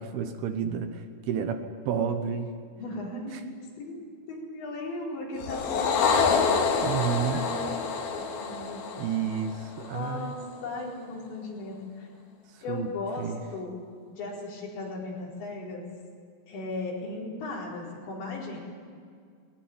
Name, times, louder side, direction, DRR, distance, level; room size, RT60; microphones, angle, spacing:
voice 1, 0.0-2.5 3.3-3.4 6.8-7.4 9.0-10.4 12.5-12.9 13.2-13.4, right 7 dB, 70° right, 8 dB, 2.8 m, -31 dB
voice 2, 2.8-3.5 3.8-4.0 4.3-6.5 7.3-7.8 8.1-8.9 9.8-12.1 12.6-13.7 14.1-15.8 16.5-18.6, left 2 dB, 80° left, -3 dB, 6.7 m, -37 dB
sound 1, 5.4-10.0, left 5 dB, 65° left, 3.4 m, -27 dB
20.5 x 19.5 x 9.5 m, 2.1 s
omnidirectional pair, 5.1 m